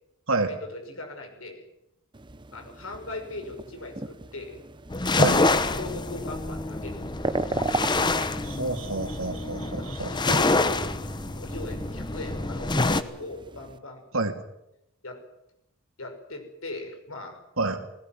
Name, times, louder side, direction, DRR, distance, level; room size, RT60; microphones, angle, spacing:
voice 1, 0.4-1.7 2.5-4.6 5.3-7.0 7.3-7.4 9.7-11.0 11.4-14.0 15.0-15.2 16.0-17.4, left 2 dB, 80° left, 4 dB, 5.7 m, -39 dB
sound 1, 2.1-13.8, right 2 dB, 20° right, 0.8 m, -38 dB
sound 2, 4.9-13.0, left 2 dB, 20° left, 1.0 m, -26 dB
voice 2, 5.1-5.4 8.4-10.1 14.1-14.3 17.6-17.8, right 3 dB, 80° right, 6 dB, 2.7 m, -28 dB
19.0 x 18.0 x 9.3 m, 0.84 s
head